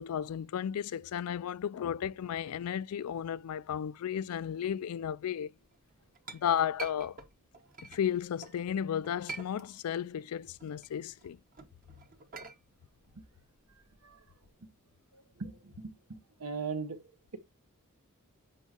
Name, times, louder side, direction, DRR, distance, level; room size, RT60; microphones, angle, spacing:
voice 1, 0.0-5.5 6.3-7.2 7.8-11.4, left 9 dB, 80° left, 0.4 m, -34 dB
Chink clink, 5.7-8.6 9.0-10.1 10.4-14.5, right 3 dB, 40° right, 1.1 m, -47 dB
voice 2, 15.4-17.0, right 5 dB, 80° right, 1.2 m, -39 dB
8.2 x 4.6 x 2.9 m
head